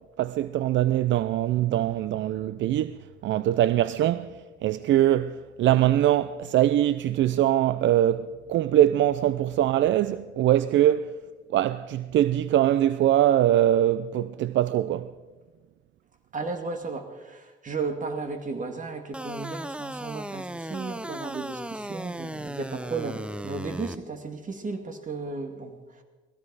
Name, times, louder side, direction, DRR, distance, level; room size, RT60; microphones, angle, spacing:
voice 1, 0.2-4.3 4.6-11.1 11.5-15.1, right 12 dB, 70° right, 0.5 m, -22 dB
voice 2, 16.3-26.0, right 4 dB, 40° right, 2.2 m, -34 dB
sound 1, 19.1-24.0, right 1 dB, 5° right, 0.6 m, -36 dB
19.0 x 15.0 x 4.8 m
cardioid pair, 90°, 20 cm